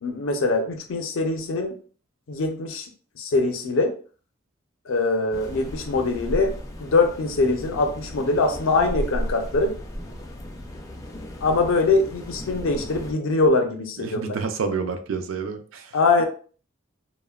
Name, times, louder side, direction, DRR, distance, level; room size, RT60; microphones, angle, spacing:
voice 1, 0.0-1.7 2.3-2.9 3.2-3.9 4.9-9.7 11.4-14.4 15.9-16.2, left 3 dB, 75° left, 5 dB, 0.5 m, -23 dB
sound 1, 5.3-13.1, equal, 15° left, 0.3 m, -35 dB
voice 2, 14.0-16.0, right 5 dB, 70° right, 8 dB, 0.4 m, -29 dB
2.8 x 2.1 x 2.3 m, 0.41 s
head